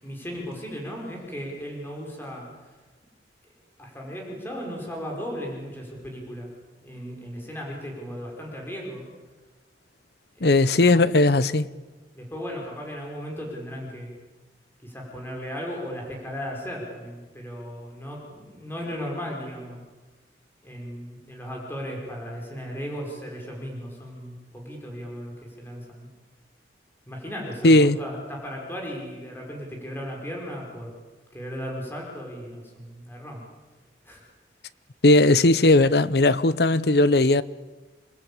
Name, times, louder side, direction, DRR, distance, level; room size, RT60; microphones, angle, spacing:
voice 1, 0.0-2.5 3.8-6.5 6.8-9.0 10.4-11.0 12.1-14.1 14.8-19.8 20.6-26.1 27.1-30.9 31.3-33.4 34.1-34.3, equal, 10° left, 5.4 m, -36 dB
voice 2, 10.4-11.7 27.6-28.0 35.0-37.4, left 2 dB, 60° left, 0.8 m, -17 dB
28.0 x 21.5 x 8.7 m
head